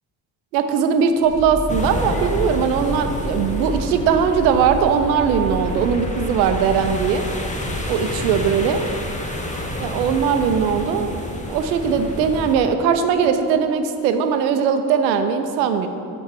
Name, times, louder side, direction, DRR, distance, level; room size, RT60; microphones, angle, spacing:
voice 1, 0.5-7.2 7.9-8.8 9.8-11.1 11.5-15.9, right 6 dB, 85° right, 8 dB, 0.6 m, -19 dB
sound 1, 1.2-7.1, right 1 dB, 85° left, 1.3 m, -30 dB
sound 2, 1.7-12.6, left 1 dB, 15° left, 1.1 m, -30 dB
6.1 x 6.0 x 5.6 m, 2.7 s
hypercardioid pair, 45°, 50 cm